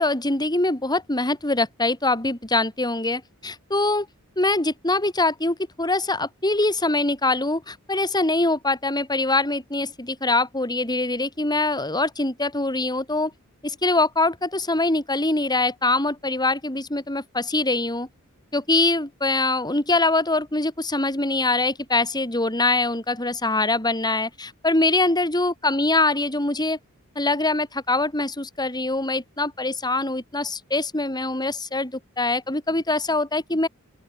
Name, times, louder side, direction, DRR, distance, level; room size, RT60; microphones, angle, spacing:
voice 1, 0.0-4.1 4.4-13.3 13.6-18.1 18.5-26.8 27.1-33.7, left 2 dB, 20° left, 4.6 m, -23 dB
open air
head